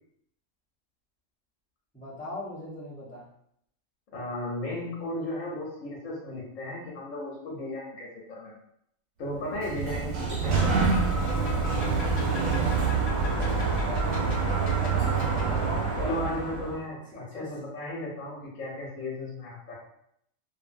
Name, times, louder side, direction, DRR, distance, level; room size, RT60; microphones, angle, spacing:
voice 1, 1.9-3.2 13.7-16.3 17.1-17.4, left 1 dB, 10° left, -9 dB, 0.7 m, -39 dB
voice 2, 4.1-8.6 9.2-11.3 16.0-19.8, left 1 dB, 80° left, -4 dB, 1.1 m, -35 dB
Sliding door, 9.4-16.8, right 4 dB, 80° right, 1.2 m, -26 dB
sound 1, 10.6-15.6, left 1 dB, 55° left, 1.1 m, -40 dB
2.6 x 2.5 x 2.5 m, 0.72 s
omnidirectional pair, 1.4 m